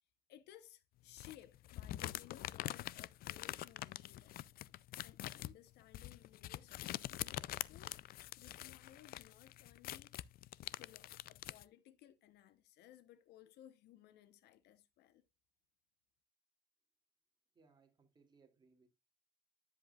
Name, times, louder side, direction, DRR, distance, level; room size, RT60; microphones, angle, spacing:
voice 1, 0.3-4.4 5.0-10.3 10.8-15.2, left 12 dB, 80° left, 0.9 m, -61 dB
sound 1, 1.2-11.6, left 15 dB, 60° left, 0.4 m, -45 dB
voice 2, 17.5-18.9, right 4 dB, 25° right, 2.5 m, -69 dB
10.0 x 7.7 x 2.4 m
cardioid pair, 110°, 17 cm